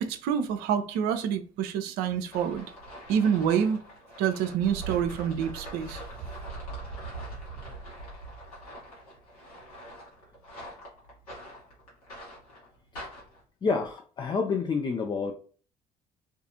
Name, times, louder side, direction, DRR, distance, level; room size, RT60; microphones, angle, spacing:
voice 1, 0.0-2.7 3.1-3.8 4.2-6.0, right 8 dB, 55° right, 0.4 m, -27 dB
sound 1, 2.3-13.4, right 2 dB, 80° left, 1.1 m, -42 dB
voice 2, 13.6-15.3, left 4 dB, 25° left, 0.4 m, -28 dB
2.4 x 2.4 x 2.7 m
figure-of-eight pair, 50°, 19 cm